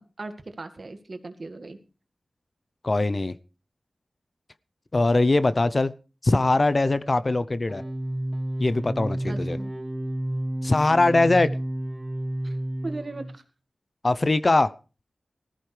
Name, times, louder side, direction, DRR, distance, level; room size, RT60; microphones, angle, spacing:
voice 1, 0.0-1.8 9.3-9.7 12.4-13.4, right 2 dB, 50° right, 8 dB, 1.9 m, -38 dB
voice 2, 2.8-3.4 4.9-5.9 6.2-7.8 8.6-9.6 10.6-11.5 14.0-14.7, left 2 dB, 40° left, 15 dB, 0.7 m, -21 dB
sound 1, 7.7-13.4, right 1 dB, 10° right, 1.7 m, -31 dB
19.5 x 14.0 x 3.3 m, 0.34 s
wide cardioid pair, 70°, 0 cm